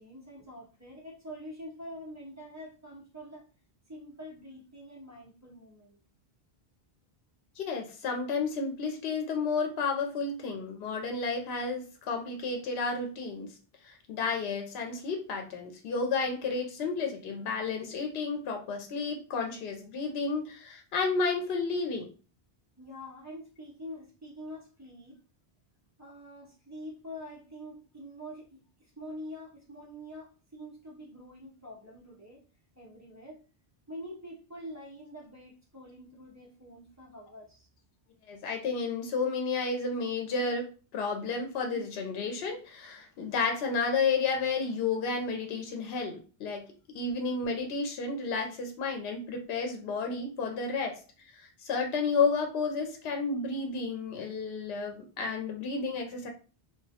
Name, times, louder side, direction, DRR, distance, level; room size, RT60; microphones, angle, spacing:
voice 1, 0.0-3.4 3.9-6.0 22.8-25.2 26.0-32.4 32.8-33.4 33.9-37.7, equal, 20° right, 0.5 m, -45 dB
voice 2, 7.6-13.5 13.8-22.1 38.3-46.7 46.9-51.0 51.4-56.3, left 4 dB, 75° left, 0.8 m, -31 dB
2.1 x 2.1 x 2.7 m
omnidirectional pair, 1.1 m